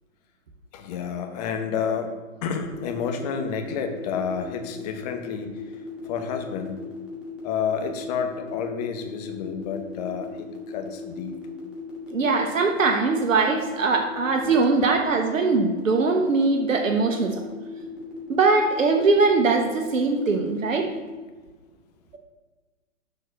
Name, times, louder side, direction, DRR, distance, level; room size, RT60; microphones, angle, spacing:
voice 1, 0.7-5.6 6.0-6.8 7.4-11.4 14.4-14.6, left 6 dB, 30° left, 6 dB, 0.9 m, -30 dB
sound 1, 2.7-21.1, left 1 dB, ahead, 1.8 m, -38 dB
voice 2, 12.1-17.4 18.3-20.9, right 4 dB, 75° right, 4 dB, 1.0 m, -21 dB
6.8 x 4.2 x 6.1 m, 1.3 s
figure-of-eight pair, 125°, 39 cm